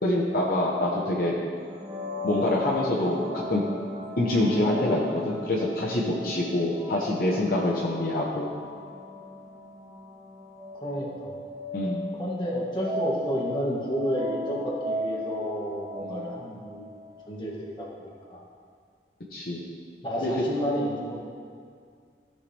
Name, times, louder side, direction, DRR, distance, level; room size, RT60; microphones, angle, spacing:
voice 1, 0.0-1.3 2.2-3.6 4.2-8.5 11.7-12.0 16.0-16.3 19.3-19.6 20.2-20.4, left 1 dB, 55° left, -4 dB, 1.1 m, -26 dB
sound 1, 1.6-17.3, left 1 dB, 15° right, 0.9 m, -37 dB
voice 2, 10.8-11.3 12.2-17.0 17.3-17.5 17.8-18.4 20.0-21.2, equal, 25° left, -5 dB, 1.8 m, -31 dB
16.0 x 5.9 x 3.5 m, 2.2 s
head